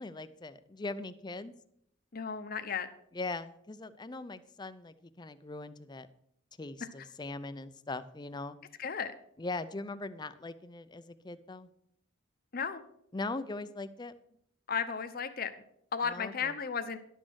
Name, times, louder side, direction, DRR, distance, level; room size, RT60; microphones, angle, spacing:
voice 1, 0.0-1.5 3.1-6.1 6.6-8.6 9.4-11.7 13.1-14.1 16.0-16.5, left 2 dB, 20° left, 12 dB, 0.5 m, -40 dB
voice 2, 2.1-2.9 8.8-9.1 12.5-12.8 14.7-15.5 15.9-17.0, left 6 dB, 45° left, 9 dB, 0.8 m, -34 dB
11.0 x 6.3 x 6.3 m, 0.72 s
head